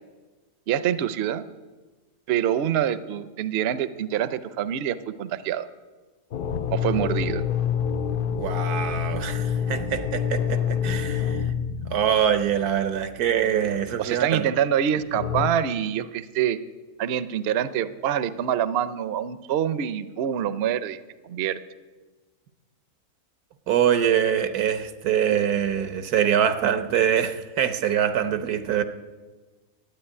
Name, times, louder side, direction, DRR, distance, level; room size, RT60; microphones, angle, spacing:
voice 1, 0.7-1.4 2.3-5.7 6.7-7.4 14.0-16.6 17.0-21.6, right 9 dB, 55° right, 0.7 m, -26 dB
sound 1, 6.3-12.9 15.1-15.5, left 7 dB, 70° left, 0.5 m, -27 dB
voice 2, 8.4-11.4 11.9-14.5 23.7-28.8, right 9 dB, 85° right, 1.5 m, -24 dB
12.0 x 8.9 x 9.9 m
omnidirectional pair, 1.6 m